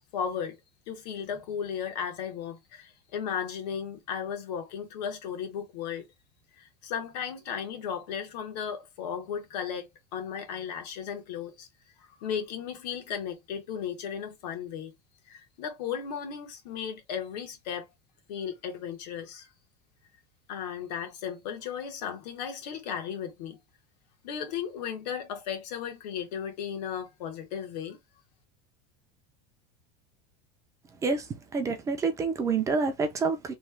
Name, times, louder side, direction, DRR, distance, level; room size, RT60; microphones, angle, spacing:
voice 1, 0.1-0.6 0.9-6.1 6.6-11.7 12.0-14.9 15.3-17.9 18.3-19.5 20.5-23.6 24.2-28.0, left 8 dB, 85° left, 1.1 m, -35 dB
voice 2, 31.0-33.5, right 4 dB, 15° right, 0.4 m, -28 dB
3.1 x 2.1 x 3.2 m
supercardioid pair, 165°, 21 cm